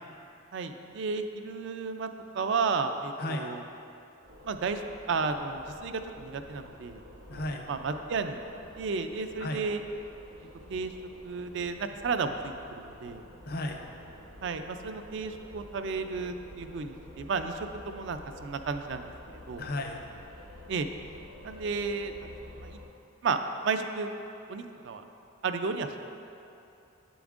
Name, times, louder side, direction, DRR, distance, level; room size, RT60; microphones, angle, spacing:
voice 1, 0.5-2.1 2.3-3.6 4.4-4.8 5.1-7.0 7.3-8.4 8.8-9.8 10.7-10.9 11.2-13.2 14.4-17.6 17.9-19.1 19.5-19.7 20.7-20.9 21.4-22.3 22.6-22.8 23.2-23.4 23.6-24.1 24.5-25.0 25.4-26.1, right 4 dB, 55° right, 7 dB, 0.3 m, -32 dB
sound 1, 4.2-22.9, left 1 dB, 90° right, 1.1 m, -50 dB
voice 2, 7.3-7.7 9.4-9.6 13.5-13.8 19.6-20.0, left 1 dB, 45° left, 3 dB, 0.5 m, -34 dB
7.8 x 6.9 x 2.5 m, 2.8 s
head